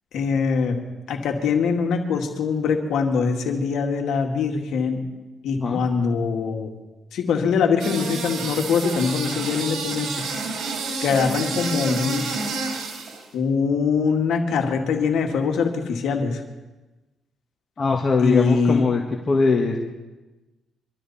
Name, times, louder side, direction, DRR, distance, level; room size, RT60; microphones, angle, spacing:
voice 1, 0.1-0.8 1.1-5.0 5.4-6.7 7.1-10.6 11.0-12.3 12.6-12.8 13.3-16.4 18.2-18.8, left 5 dB, 75° left, 3 dB, 2.3 m, -23 dB
sound 1, 7.8-13.2, right 3 dB, 75° right, 3.9 m, -29 dB
voice 2, 17.8-19.8, left 4 dB, 35° left, -1 dB, 1.9 m, -21 dB
24.5 x 13.0 x 4.4 m, 1.1 s
cardioid pair, 90°, 0 cm